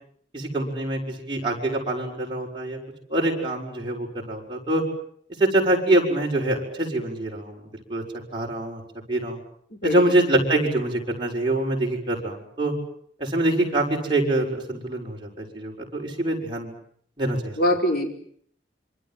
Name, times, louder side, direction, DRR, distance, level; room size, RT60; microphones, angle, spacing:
voice 1, 0.3-2.8 3.1-4.8 5.4-7.6 7.9-8.0 8.3-8.8 9.1-9.4 9.8-12.7 13.2-16.7 17.2-17.5, right 1 dB, 25° right, -2 dB, 6.5 m, -24 dB
voice 2, 9.7-10.1 17.6-18.1, left 1 dB, 55° left, 3 dB, 5.1 m, -23 dB
27.0 x 25.0 x 7.7 m, 0.64 s
head